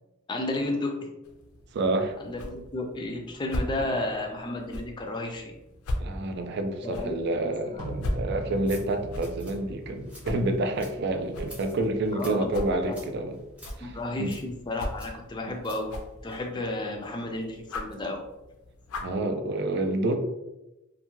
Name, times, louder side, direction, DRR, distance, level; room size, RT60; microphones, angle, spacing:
voice 1, 0.3-1.0 2.2-5.5 6.8-7.2 7.4-7.5 12.2-12.5 12.9-13.0 13.8-16.0 16.2-18.2, left 2 dB, 20° left, 3 dB, 0.3 m, -32 dB
sound 1, 1.2-19.2, left 1 dB, 85° left, 0.4 m, -39 dB
voice 2, 1.7-2.2 6.0-13.4 13.8-14.3 19.0-20.2, right 2 dB, 50° right, 6 dB, 0.3 m, -28 dB
sound 2, 7.8-11.8, right 1 dB, 80° right, 0.7 m, -40 dB
sound 3, 8.4-16.5, equal, 5° right, 0.7 m, -50 dB
2.5 x 2.3 x 3.0 m, 0.98 s
head